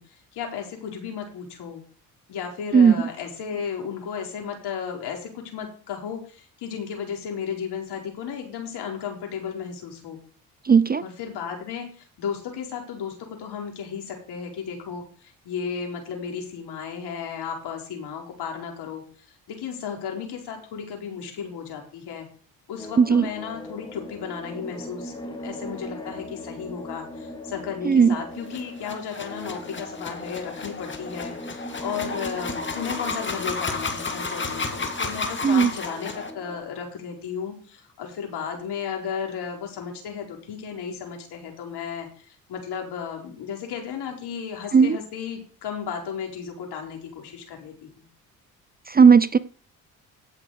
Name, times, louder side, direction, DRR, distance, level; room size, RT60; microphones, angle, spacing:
voice 1, 0.0-1.8 2.3-10.2 11.0-19.0 19.5-22.3 22.7-48.0, left 7 dB, 65° left, 1 dB, 4.4 m, -34 dB
voice 2, 10.7-11.0 23.0-23.3 27.8-28.2 35.4-35.7 44.7-45.0 48.9-49.4, right 6 dB, 20° right, 17 dB, 0.5 m, -15 dB
sound 1, 22.8-36.6, left 1 dB, 10° left, 2.6 m, -39 dB
sound 2, 28.4-36.3, left 3 dB, 25° left, 2.4 m, -32 dB
16.5 x 6.2 x 4.9 m, 0.41 s
supercardioid pair, 60°, 42 cm